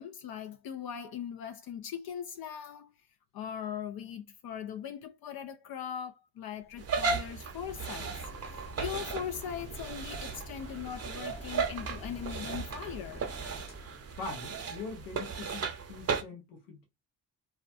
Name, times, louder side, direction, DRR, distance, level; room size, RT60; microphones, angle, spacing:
voice 1, 0.0-2.9 3.3-13.2, left 8 dB, 60° left, 0.5 m, -40 dB
Waves surf, 6.6-14.2, left 1 dB, 15° left, 0.6 m, -47 dB
sound 1, 6.8-16.2, right 5 dB, 35° right, 0.7 m, -36 dB
voice 2, 14.1-16.9, left 5 dB, 90° left, 0.9 m, -43 dB
2.3 x 2.2 x 2.4 m
supercardioid pair, 60°, 42 cm